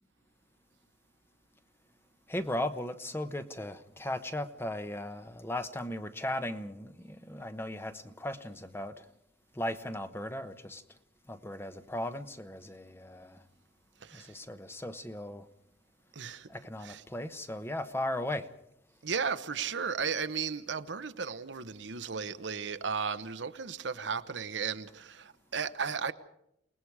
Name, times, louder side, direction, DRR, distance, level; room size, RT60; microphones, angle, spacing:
voice 1, 2.3-8.9 9.6-10.8 11.3-13.4 14.1-15.4 16.5-18.5, left 1 dB, 15° left, 1.0 m, -37 dB
voice 2, 14.0-14.3 16.1-16.5 16.8-17.0 19.0-26.1, right 6 dB, 70° right, 1.0 m, -35 dB
29.0 x 19.5 x 4.8 m
head